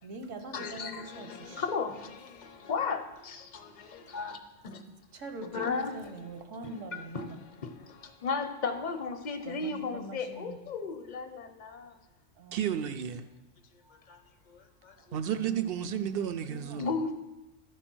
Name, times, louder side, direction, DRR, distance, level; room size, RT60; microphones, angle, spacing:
voice 1, 0.0-1.7 4.1-4.2 5.1-7.4 9.4-10.6 12.4-12.8 15.0-15.2 16.4-16.9, right 2 dB, 80° right, 1.3 m, -43 dB
voice 2, 0.5-4.8 5.5-5.9 6.9-7.3 7.6-12.0 13.8-14.2 14.5-15.2 16.8-17.1, left 4 dB, 40° left, 0.8 m, -35 dB
voice 3, 12.5-13.3 15.1-16.9, right 9 dB, 60° right, 0.7 m, -32 dB
11.5 x 4.7 x 6.1 m
omnidirectional pair, 1.3 m